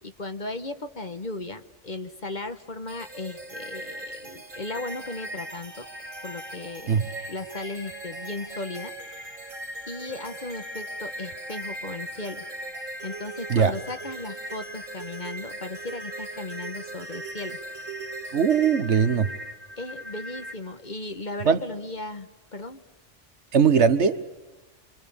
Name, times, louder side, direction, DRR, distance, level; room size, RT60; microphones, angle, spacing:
voice 1, 0.0-5.9 6.2-8.9 9.9-12.4 13.0-17.6 19.8-22.8, left 2 dB, 40° left, 9 dB, 1.3 m, -36 dB
sound 1, 2.9-20.5, right 1 dB, 90° right, 2.7 m, -38 dB
voice 2, 18.3-19.3 21.4-21.6 23.5-24.2, right 6 dB, 65° right, 11 dB, 1.5 m, -20 dB
28.5 x 25.5 x 7.1 m, 1.1 s
omnidirectional pair, 1.3 m